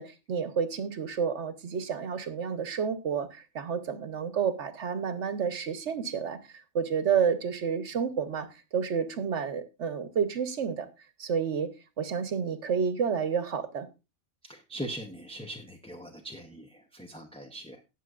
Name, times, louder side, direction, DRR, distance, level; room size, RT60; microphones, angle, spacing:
voice 1, 0.0-8.5 8.7-10.9 11.2-11.7 12.0-13.9, right 6 dB, 65° right, 1.3 m, -30 dB
voice 2, 14.4-17.8, right 1 dB, 5° left, 0.8 m, -41 dB
19.0 x 6.6 x 2.5 m
omnidirectional pair, 1.3 m